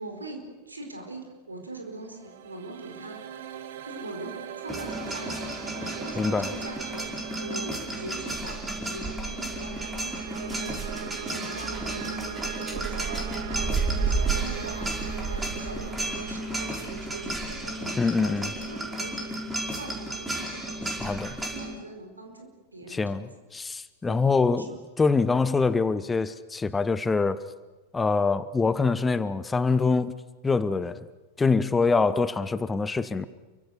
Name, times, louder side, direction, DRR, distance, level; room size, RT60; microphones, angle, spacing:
voice 1, 0.0-3.5 3.8-5.6 6.0-8.6 8.9-19.3 19.8-21.2 21.5-23.3 24.1-24.2 24.5-24.8, right 2 dB, 80° right, 4 dB, 5.0 m, -42 dB
sound 1, 1.9-19.0, right 11 dB, 55° right, 1.5 m, -41 dB
sound 2, 4.7-21.7, right 2 dB, 10° right, 4.8 m, -32 dB
voice 2, 6.2-6.5 18.0-18.5 21.0-21.4 22.9-24.7 25.0-27.4 27.9-31.0 31.4-33.3, left 4 dB, 15° left, 15 dB, 0.9 m, -24 dB
28.5 x 24.0 x 6.8 m, 1.2 s
figure-of-eight pair, 90°, 0 cm